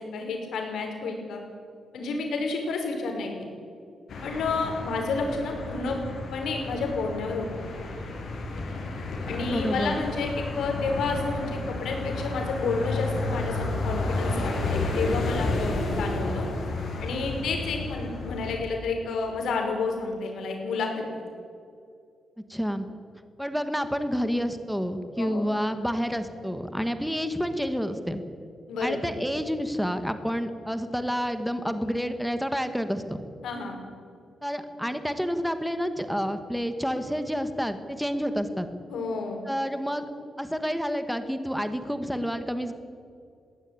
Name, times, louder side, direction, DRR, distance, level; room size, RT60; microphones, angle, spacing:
voice 1, 0.0-1.4 1.9-3.5 4.2-6.0 6.3-7.5 9.3-16.5 17.0-21.0 25.2-25.4 28.7-29.0 33.4-33.8 38.9-39.4, left 4 dB, 80° left, 2 dB, 5.4 m, -30 dB
sound 1, 4.1-18.5, left 2 dB, 60° left, 6.1 m, -31 dB
voice 2, 9.4-10.0 22.5-22.9 23.4-28.2 28.8-33.2 34.4-38.7 39.5-40.0 40.4-42.7, equal, ahead, 9 dB, 1.2 m, -29 dB
21.0 x 16.5 x 9.1 m, 2.4 s
wide cardioid pair, 180°, 0 cm